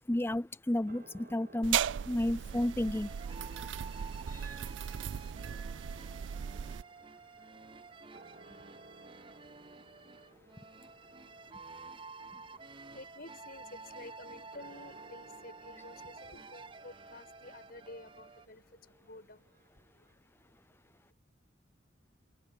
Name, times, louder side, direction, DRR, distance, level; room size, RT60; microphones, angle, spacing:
voice 1, 0.1-1.8 2.1-3.1 4.3-4.6, left 1 dB, 15° left, 0.5 m, -32 dB
sound 1, 0.9-7.5 8.0-20.1, right 2 dB, 50° right, 1.6 m, -61 dB
sound 2, 1.6-6.8, right 9 dB, 80° right, 0.4 m, -37 dB
sound 3, 2.5-18.5, right 4 dB, 30° right, 0.7 m, -51 dB
voice 2, 3.5-21.1, left 2 dB, 55° left, 7.3 m, -55 dB
head